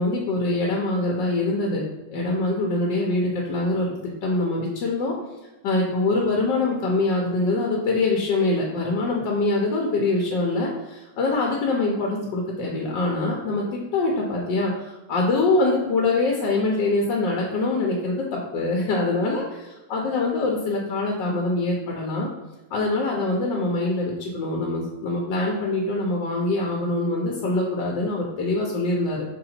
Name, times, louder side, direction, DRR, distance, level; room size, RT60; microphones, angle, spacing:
voice 1, 0.0-5.1 5.6-22.3 22.7-29.2, left 2 dB, 85° left, -1 dB, 1.5 m, -24 dB
5.9 x 3.9 x 4.3 m, 1.1 s
omnidirectional pair, 1.9 m